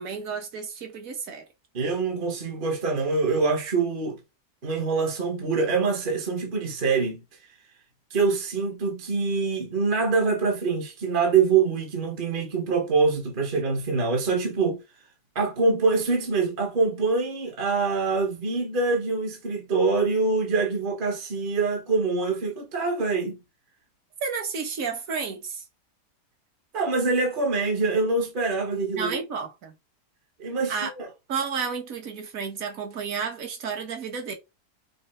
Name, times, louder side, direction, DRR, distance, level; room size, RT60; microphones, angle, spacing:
voice 1, 0.0-1.5 24.2-25.7 29.0-29.7 30.7-30.9 31.3-34.3, right 5 dB, 60° right, 1.4 m, -31 dB
voice 2, 1.7-4.2 4.6-7.2 8.1-14.8 15.3-23.4 26.7-29.2 30.4-31.1, right 4 dB, 40° right, 0.9 m, -25 dB
5.3 x 2.0 x 4.3 m
omnidirectional pair, 1.7 m